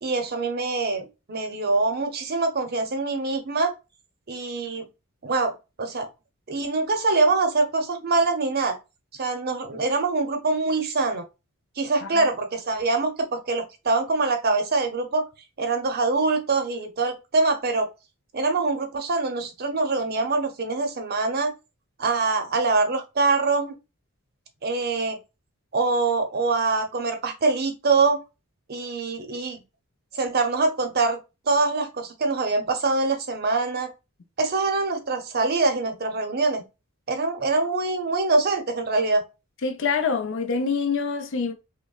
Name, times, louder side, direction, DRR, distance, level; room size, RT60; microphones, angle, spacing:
voice 1, 0.0-3.7 4.3-4.9 5.2-6.1 6.5-8.8 9.1-11.2 11.8-15.3 15.6-17.9 18.3-21.5 22.0-23.7 24.6-25.2 25.7-28.2 28.7-29.6 30.1-31.2 31.5-33.9 34.4-36.6 37.1-39.2, right 3 dB, 45° right, 0.7 m, -24 dB
voice 2, 39.6-41.5, left 5 dB, 60° left, 0.6 m, -25 dB
5.2 x 2.2 x 2.3 m
head